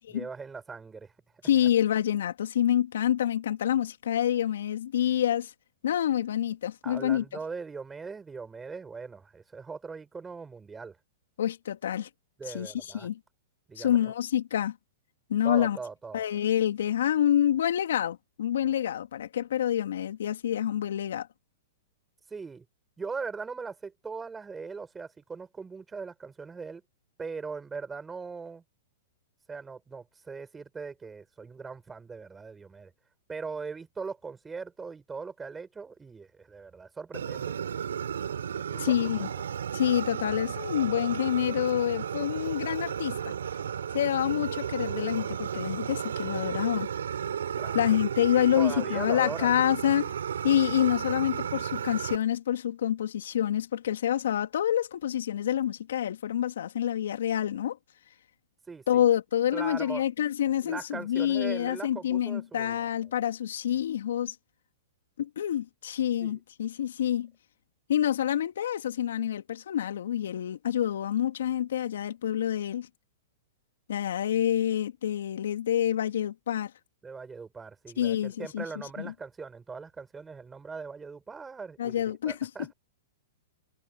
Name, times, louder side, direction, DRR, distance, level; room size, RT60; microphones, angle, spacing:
voice 1, 0.1-1.1 6.8-11.0 12.4-13.1 13.7-14.1 15.4-16.2 22.3-22.6 23.0-26.8 27.2-28.6 29.5-32.9 33.3-37.4 38.5-39.3 47.6-47.9 48.6-49.5 58.7-59.0 59.5-60.0 60.6-62.8 66.2-66.4 77.0-82.7, right 5 dB, 15° right, 5.6 m, -40 dB
voice 2, 1.4-5.5 5.8-7.2 11.4-12.1 12.5-13.2 13.8-14.7 15.3-15.8 16.1-21.3 38.8-39.3 39.7-43.3 43.9-46.9 47.7-50.1 50.4-57.8 58.9-64.3 65.2-67.3 67.9-72.9 73.9-76.7 78.0-78.6 79.0-79.1 81.8-82.5, left 10 dB, 75° left, 2.8 m, -27 dB
Fire, 37.1-52.2, right 8 dB, 85° right, 3.8 m, -33 dB
hypercardioid pair, 125°, 0 cm